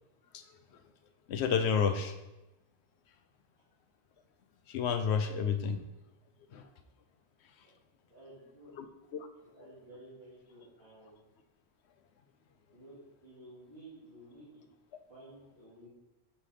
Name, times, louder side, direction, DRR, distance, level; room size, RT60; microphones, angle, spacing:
voice 1, 1.3-2.1 4.7-5.8 6.5-6.6 8.8-8.9 9.1-9.3, left 6 dB, 85° left, 9 dB, 0.9 m, -30 dB
voice 2, 8.1-8.7 9.5-11.2 12.7-14.5 15.1-15.9, right 1 dB, 65° right, -13 dB, 2.7 m, -53 dB
7.1 x 3.3 x 5.6 m, 1.0 s
omnidirectional pair, 1.1 m